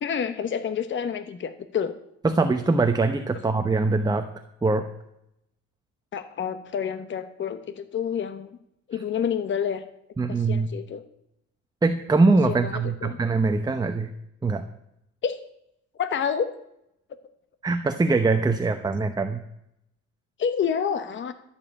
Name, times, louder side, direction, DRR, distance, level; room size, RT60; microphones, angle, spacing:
voice 1, 0.0-1.9 6.1-8.5 8.9-9.8 10.3-11.0 12.5-13.2 15.2-15.4 16.0-16.5 20.4-21.3, left 7 dB, 40° left, 10 dB, 1.0 m, -28 dB
voice 2, 2.2-4.3 4.6-4.9 10.2-10.7 11.8-14.1 14.4-14.6 17.6-19.4, right 3 dB, 15° right, 7 dB, 0.8 m, -22 dB
13.5 x 7.2 x 8.6 m, 0.79 s
cardioid pair, 120°, 29 cm